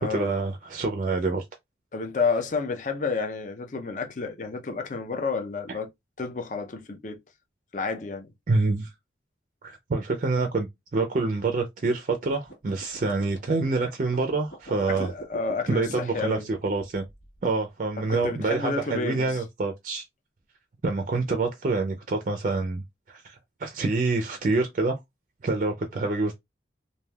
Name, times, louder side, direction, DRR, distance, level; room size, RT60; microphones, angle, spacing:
voice 1, 0.1-1.4 8.5-8.9 9.6-10.7 10.9-15.1 15.7-17.0 17.4-20.0 20.8-22.8 23.1-25.0 25.4-26.3, right 3 dB, 45° right, 0.4 m, -26 dB
voice 2, 1.9-5.9 6.2-7.2 7.7-8.3 14.9-16.5 18.1-19.4, left 4 dB, 45° left, 0.5 m, -30 dB
sound 1, 12.3-17.5, right 2 dB, 85° left, 1.5 m, -44 dB
3.3 x 2.5 x 2.3 m
head